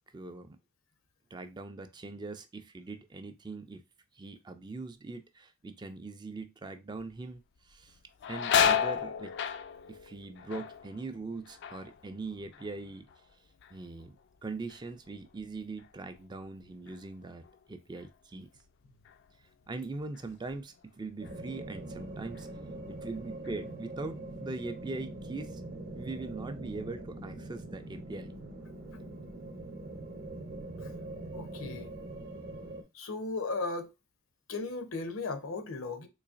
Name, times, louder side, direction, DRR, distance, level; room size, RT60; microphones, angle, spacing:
voice 1, 0.1-0.6 1.3-3.8 4.1-8.0 8.3-9.3 9.9-13.1 13.7-18.5 19.7-22.5 22.9-25.6 25.9-28.3, right 3 dB, 20° right, 0.3 m, -41 dB
sound 1, 7.0-7.4 7.7-13.3 13.6-14.2 14.7-17.6 18.0-18.1 19.0-19.2 19.7-20.8 21.2-21.4 22.0-22.7 23.0-24.1, left 8 dB, 55° left, 0.3 m, -33 dB
sound 2, 21.2-32.8, right 2 dB, 50° right, 0.7 m, -43 dB
voice 2, 31.3-31.9 32.9-33.9 34.5-36.1, left 3 dB, 80° left, 0.7 m, -36 dB
3.9 x 3.1 x 2.4 m
head